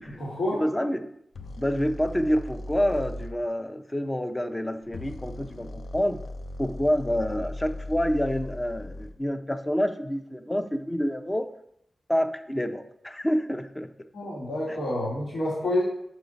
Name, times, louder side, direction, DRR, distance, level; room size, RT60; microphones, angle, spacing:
voice 1, 0.1-0.6 14.1-15.8, left 1 dB, 85° left, -8 dB, 2.3 m, -28 dB
voice 2, 0.6-1.1 1.6-6.2 6.6-11.5 12.1-13.9 14.7-14.8, equal, 15° left, 8 dB, 0.5 m, -27 dB
sound 1, 1.3-3.4 4.8-9.2, left 1 dB, 70° left, 0.5 m, -38 dB
6.1 x 5.5 x 5.1 m, 0.74 s
wide cardioid pair, 120°, 0 cm